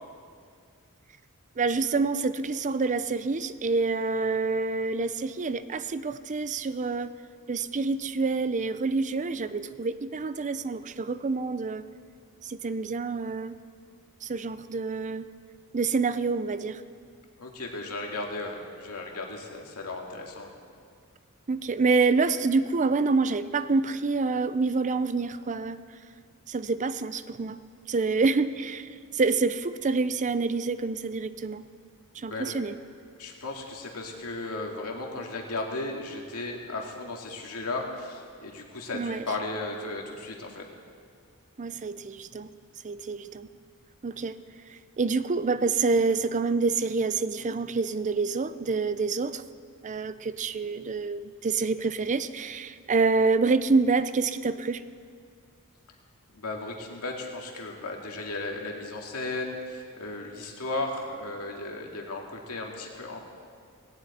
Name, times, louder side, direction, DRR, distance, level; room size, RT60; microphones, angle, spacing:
voice 1, 1.6-7.1 7.5-11.8 12.4-13.6 14.2-15.3 15.7-16.8 21.5-25.8 26.5-27.6 27.9-31.6 32.1-32.8 38.9-39.2 41.6-42.5 42.8-43.5 44.0-44.4 44.7-49.4 49.8-54.8, right 4 dB, 35° right, 13 dB, 0.5 m, -27 dB
voice 2, 17.4-20.5 32.2-32.5 33.2-40.6 56.3-63.2, left 2 dB, 90° left, 0 dB, 2.3 m, -35 dB
19.0 x 17.5 x 4.3 m, 2.2 s
head